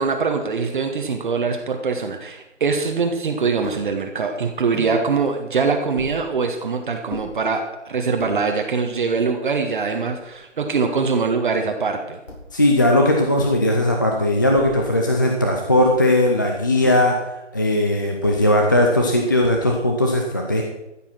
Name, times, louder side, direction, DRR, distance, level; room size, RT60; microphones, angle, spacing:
voice 1, 0.0-12.2, right 5 dB, 45° right, 4 dB, 1.2 m, -23 dB
sound 1, 3.6-3.9 4.7-5.0 6.0-6.2 7.1-7.3 8.0-8.4 9.1-9.2 9.4-10.4 12.3-12.6 13.4-13.7 14.5-14.9 15.7-16.1 16.8-17.2 18.2-18.5 19.4-19.9, equal, 85° left, 4.9 m, -37 dB
voice 2, 12.5-17.2 17.5-20.6, left 1 dB, 15° left, 1 dB, 0.5 m, -18 dB
13.5 x 7.4 x 5.9 m, 0.93 s
figure-of-eight pair, 150°, 36 cm